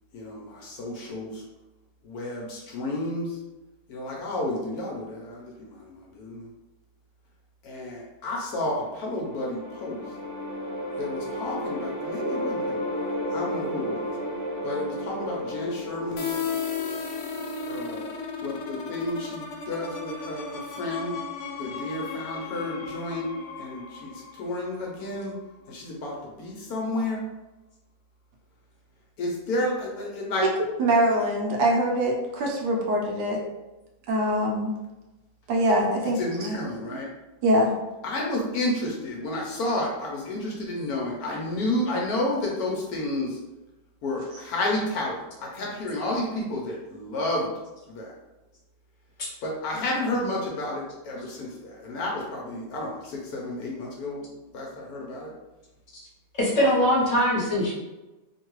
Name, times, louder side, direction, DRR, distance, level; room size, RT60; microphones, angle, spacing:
voice 1, 0.1-1.4 2.0-3.4 3.9-6.5 7.6-10.0 11.0-12.9 13.3-14.0 14.6-16.3 17.7-18.1 18.4-21.2 21.6-23.3 23.6-24.1 24.4-25.3 25.7-27.2 29.2-30.5 36.2-37.1 38.0-43.4 44.0-47.5 47.9-48.1 49.4-54.2 54.5-55.3 56.6-56.7, left 1 dB, 70° left, -2 dB, 1.0 m, -31 dB
sound 1, 8.7-17.9, equal, 50° right, 1.0 m, -33 dB
sound 2, 16.2-25.7, left 5 dB, 85° left, 0.6 m, -35 dB
voice 2, 30.8-33.4 34.1-34.7 35.5-36.2 36.9-37.0 37.4-37.7, right 1 dB, 75° right, -1 dB, 1.2 m, -23 dB
voice 3, 56.4-57.7, equal, 45° left, -7 dB, 1.2 m, -22 dB
3.0 x 2.2 x 3.0 m, 1.0 s
omnidirectional pair, 1.8 m